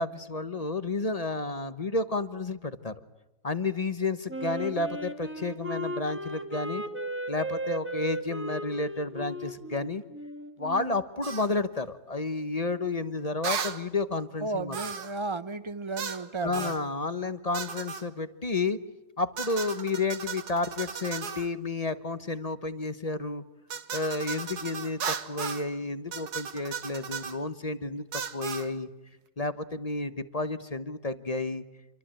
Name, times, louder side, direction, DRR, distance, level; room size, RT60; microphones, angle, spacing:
voice 1, 0.0-2.9 3.4-6.8 7.3-10.0 10.6-14.8 16.4-18.8 19.2-23.4 23.9-28.9 29.4-31.6, left 3 dB, 25° left, 12 dB, 1.0 m, -31 dB
Wind instrument woodwind instrument, 4.3-11.1, right 1 dB, 5° right, 2.0 m, -36 dB
sound 1, 11.2-11.5 13.4-13.8 14.7-15.2 16.0-16.2 16.5-16.8 17.5-18.0 19.4-21.5 23.7-25.7 26.1-27.4 28.1-28.7, right 6 dB, 70° right, 1.9 m, -35 dB
voice 2, 14.4-16.7, right 3 dB, 25° right, 14 dB, 0.7 m, -34 dB
28.0 x 24.0 x 8.9 m, 0.98 s
omnidirectional pair, 1.8 m